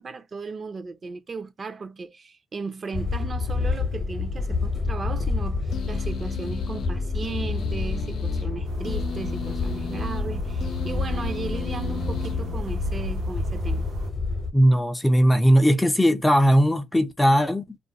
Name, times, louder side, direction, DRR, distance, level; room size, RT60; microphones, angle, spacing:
voice 1, 0.0-13.9, right 4 dB, 40° right, 0.5 m, -36 dB
sound 1, 2.9-14.5, left 4 dB, 35° left, 0.8 m, -28 dB
sound 2, 5.7-13.1, left 8 dB, 65° left, 0.4 m, -37 dB
sound 3, 8.6-14.1, right 3 dB, 85° right, 0.9 m, -36 dB
voice 2, 14.5-17.8, equal, 10° left, 0.4 m, -19 dB
2.4 x 2.1 x 3.9 m
cardioid pair, 90°, 0 cm